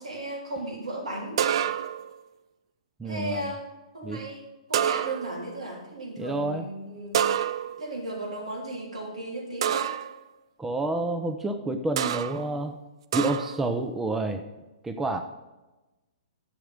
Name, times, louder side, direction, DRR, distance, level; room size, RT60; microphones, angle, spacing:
voice 1, 0.0-1.4 3.0-3.7 3.9-7.3 7.8-9.9, right 1 dB, 80° right, -1 dB, 3.3 m, -35 dB
sound 1, 1.4-2.1 4.7-5.5 7.1-7.9 9.6-10.2 12.0-12.5 13.1-13.7, right 9 dB, 60° right, 0.5 m, -27 dB
voice 2, 3.0-3.5 4.0-4.2 6.2-6.7 10.6-12.7 13.1-14.4 14.8-15.2, right 2 dB, 10° right, 6 dB, 0.7 m, -29 dB
10.0 x 7.1 x 5.3 m, 1.1 s
hypercardioid pair, 125°, 3 cm